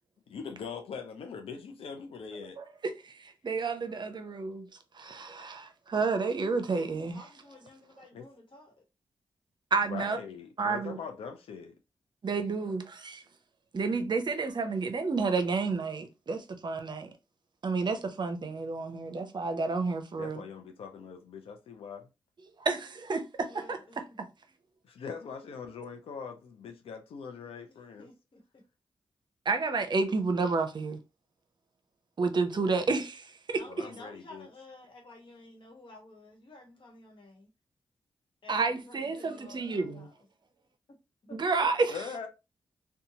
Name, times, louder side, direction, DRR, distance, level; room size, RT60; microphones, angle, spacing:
voice 1, 0.3-2.6 8.1-8.3 9.9-11.8 20.1-22.1 24.9-28.1 32.5-32.7 33.7-34.5 41.9-42.3, left 6 dB, 80° left, 0.5 m, -42 dB
voice 2, 2.6-4.7 4.9-7.3 9.7-10.2 10.6-11.0 12.2-13.2 13.7-17.1 17.6-20.4 22.6-24.3 29.5-31.0 32.2-33.9 38.5-40.1 41.3-42.0, right 4 dB, 50° right, 0.6 m, -30 dB
voice 3, 6.7-8.7 23.5-24.2 28.0-28.6 33.6-37.5 38.4-40.1 41.2-41.4, left 2 dB, 60° left, 1.2 m, -52 dB
2.7 x 2.3 x 2.7 m
supercardioid pair, 45°, 10 cm